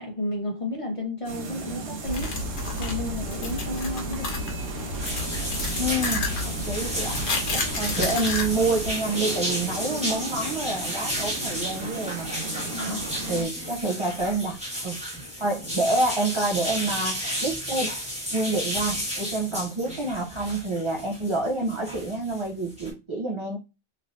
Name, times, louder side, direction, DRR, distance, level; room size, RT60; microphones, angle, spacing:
voice 1, 0.0-2.4 2.8-4.3 12.7-13.5, left 1 dB, 35° left, 0.6 m, -32 dB
sound 1, 1.2-13.4, right 3 dB, 75° right, 1.1 m, -36 dB
sound 2, 2.1-8.9, left 2 dB, 65° left, 1.2 m, -31 dB
sound 3, 5.0-22.9, equal, 5° right, 1.2 m, -32 dB
voice 2, 5.8-6.3 6.6-7.2 7.5-12.3 12.8-14.6 14.8-15.0 15.4-17.9 18.3-23.6, right 2 dB, 50° right, 0.3 m, -28 dB
3.1 x 3.0 x 2.5 m
omnidirectional pair, 1.3 m